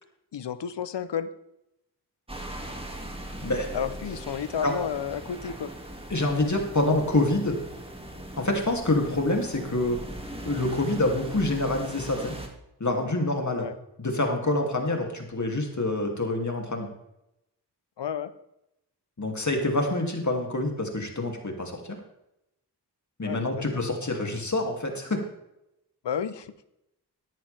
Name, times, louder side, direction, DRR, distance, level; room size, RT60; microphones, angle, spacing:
voice 1, 0.3-1.3 3.7-5.7 13.6-13.8 18.0-18.3 23.2-23.6 26.0-26.5, left 8 dB, 80° left, 14 dB, 0.8 m, -31 dB
sound 1, 2.3-12.5, right 1 dB, 15° right, 2.4 m, -40 dB
voice 2, 3.4-3.8 4.6-4.7 6.1-7.6 8.4-10.0 10.4-12.3 12.8-13.6 14.0-16.9 19.2-22.0 23.2-25.2, left 2 dB, 45° left, 2 dB, 2.8 m, -26 dB
14.5 x 10.5 x 3.5 m, 0.85 s
cardioid pair, 50°, 42 cm